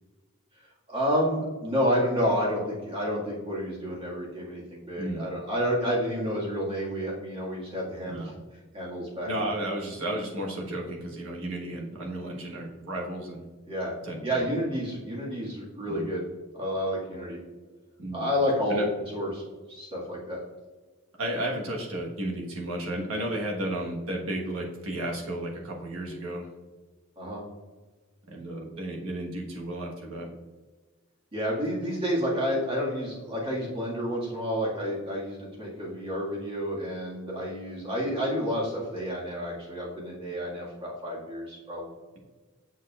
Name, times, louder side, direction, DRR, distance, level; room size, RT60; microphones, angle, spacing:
voice 1, 0.9-8.3 8.7-9.3 13.7-13.9 14.2-16.2 16.5-17.4 18.1-18.9 19.1-19.4 19.7-20.4 27.2-27.4 31.3-41.9, equal, 25° right, -5 dB, 1.8 m, -30 dB
voice 2, 5.0-5.3 8.1-8.3 9.3-13.4 14.0-14.4 15.9-16.1 18.0-18.2 18.7-18.8 21.2-26.5 28.3-30.3, right 1 dB, 85° right, -1 dB, 1.4 m, -33 dB
7.1 x 6.4 x 2.4 m, 1.3 s
head